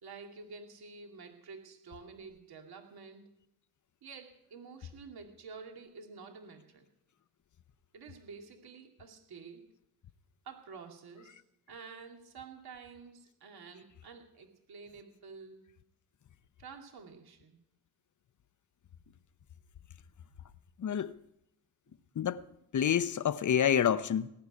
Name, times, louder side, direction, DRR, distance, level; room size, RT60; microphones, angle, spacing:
voice 1, 0.0-3.3 4.0-6.9 7.9-9.7 10.4-11.4 11.7-15.7 16.6-17.6, right 5 dB, 55° right, 2.7 m, -49 dB
voice 2, 20.8-21.1 22.2-22.4 22.7-24.3, left 9 dB, 45° left, 1.0 m, -28 dB
18.0 x 6.1 x 9.8 m
supercardioid pair, 60°, 43 cm